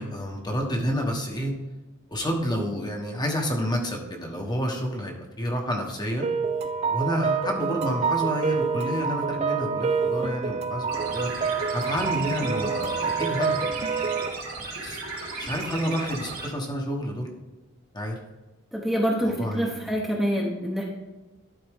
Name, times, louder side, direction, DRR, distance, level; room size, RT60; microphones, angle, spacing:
voice 1, 0.0-1.5 2.1-6.3 6.9-11.3 11.7-13.7 14.8-15.0 15.4-17.3 17.9-18.2 19.2-20.0, equal, 20° left, 1 dB, 1.1 m, -29 dB
sound 1, 6.2-14.3, right 5 dB, 30° right, 0.4 m, -27 dB
sound 2, 10.9-16.5, right 3 dB, 80° right, 2.6 m, -35 dB
voice 2, 18.7-20.8, equal, ahead, -3 dB, 0.9 m, -26 dB
11.5 x 4.3 x 3.6 m, 1.1 s
head